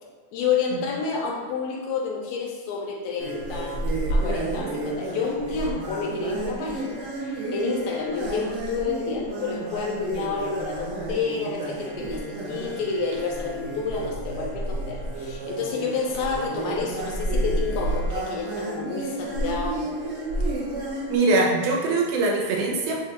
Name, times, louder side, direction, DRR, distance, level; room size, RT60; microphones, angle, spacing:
voice 1, 0.3-3.8 4.1-19.8, left 5 dB, 75° left, -1 dB, 1.9 m, -29 dB
sound 1, 3.2-21.2, right 1 dB, 70° right, 1.4 m, -30 dB
voice 2, 21.1-23.0, right 2 dB, 85° right, 1 dB, 2.1 m, -22 dB
7.0 x 2.3 x 2.9 m, 1.5 s
omnidirectional pair, 3.5 m